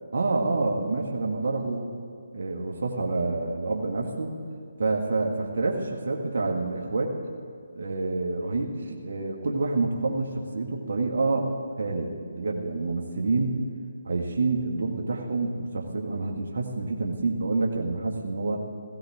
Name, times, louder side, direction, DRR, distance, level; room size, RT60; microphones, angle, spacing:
voice 1, 0.1-1.9 2.3-4.4 4.8-7.2 7.8-13.6 14.0-18.6, right 3 dB, 65° right, 0 dB, 1.7 m, -28 dB
17.0 x 16.0 x 3.6 m, 2.2 s
figure-of-eight pair, 155°, 0 cm